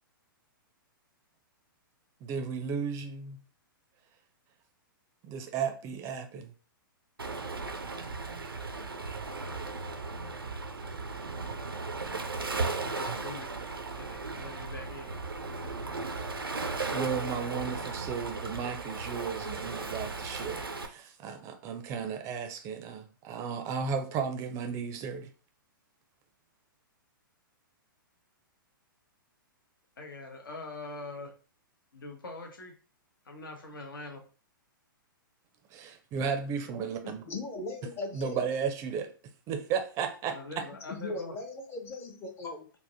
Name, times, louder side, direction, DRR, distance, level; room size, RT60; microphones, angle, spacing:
voice 1, 2.2-3.4 5.2-6.5 16.6-25.3 35.7-37.2 38.1-39.1 39.5-40.6, right 6 dB, 25° right, 0.4 m, -34 dB
Waves surf, 7.2-20.9, right 3 dB, 90° right, 0.4 m, -36 dB
voice 2, 12.8-13.5 14.0-15.2 30.0-31.3 31.9-32.7 33.2-34.2 37.0-37.6 40.3-41.4, left 2 dB, 70° left, 0.9 m, -43 dB
voice 3, 37.3-38.4 40.9-42.7, left 3 dB, 20° left, 0.6 m, -38 dB
3.4 x 2.1 x 2.6 m
figure-of-eight pair, 115°, 12 cm